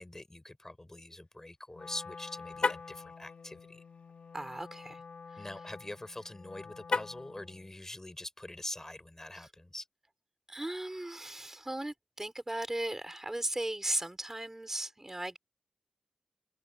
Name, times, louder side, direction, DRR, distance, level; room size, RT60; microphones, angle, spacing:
voice 1, 0.0-3.8 5.4-9.9, left 1 dB, 20° left, 3.7 m, -44 dB
Wind instrument woodwind instrument, 1.7-7.7, left 5 dB, 85° left, 2.6 m, -49 dB
Car, 2.5-3.0 6.8-7.3, left 4 dB, 55° left, 0.7 m, -32 dB
voice 2, 4.3-5.0 5.3-5.5 9.3-9.5 10.5-15.4, right 1 dB, 20° right, 4.8 m, -37 dB
wide cardioid pair, 90°, 2 cm